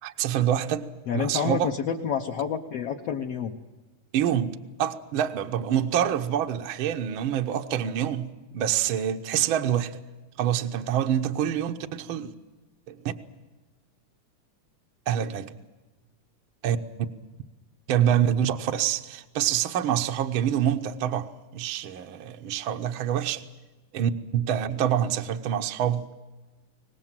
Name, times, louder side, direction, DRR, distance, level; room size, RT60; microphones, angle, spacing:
voice 1, 0.0-0.9 1.1-1.7 4.1-10.0 10.4-12.3 12.9-13.1 15.1-15.5 16.6-16.8 17.9-23.4 23.9-26.1, right 10 dB, 65° right, 1.3 m, -26 dB
voice 2, 1.1-3.6, left 7 dB, 65° left, 1.9 m, -29 dB
24.0 x 19.5 x 7.4 m
omnidirectional pair, 3.4 m